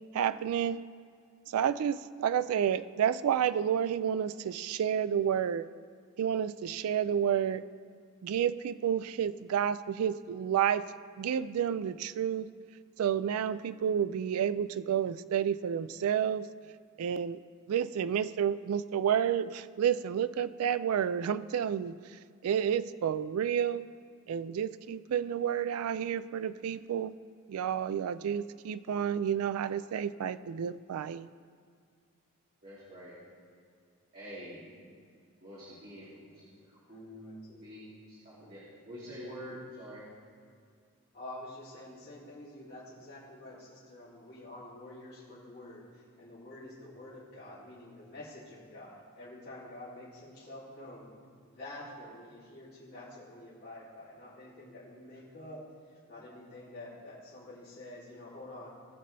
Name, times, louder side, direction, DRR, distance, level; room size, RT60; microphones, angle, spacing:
voice 1, 0.1-0.8 1.5-5.7 6.2-7.6 8.2-10.8 11.2-12.5 13.0-16.5 17.0-17.4 17.7-22.0 22.4-23.8 24.3-27.1 27.5-31.3, right 8 dB, 80° right, 14 dB, 0.3 m, -30 dB
voice 2, 32.6-33.1 34.1-34.7 35.4-36.4 36.7-40.0, equal, 40° right, -11 dB, 2.6 m, -46 dB
voice 3, 36.9-37.6 41.1-51.1 51.5-55.6 56.1-58.7, left 1 dB, 45° left, -12 dB, 3.0 m, -48 dB
19.0 x 6.6 x 3.3 m, 2.2 s
head